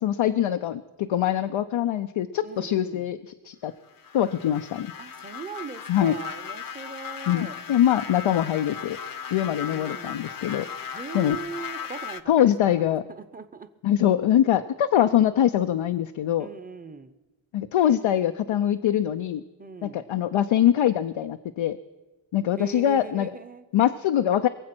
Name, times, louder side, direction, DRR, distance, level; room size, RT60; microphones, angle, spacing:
voice 1, 0.0-3.7 4.1-4.9 5.9-6.1 7.3-9.0 9.3-10.7 11.1-11.4 12.3-13.0 13.8-16.5 17.5-19.4 19.8-21.8 22.3-23.3 23.7-24.5, left 11 dB, 85° left, 0.6 m, -23 dB
voice 2, 2.4-3.1 5.0-7.6 9.4-10.3 10.9-13.7 16.4-17.2 19.6-20.0 22.6-23.7, right 4 dB, 20° right, 0.8 m, -40 dB
sound 1, 3.9-12.2, left 7 dB, 45° left, 0.7 m, -37 dB
22.5 x 7.6 x 6.0 m
wide cardioid pair, 75°, 47 cm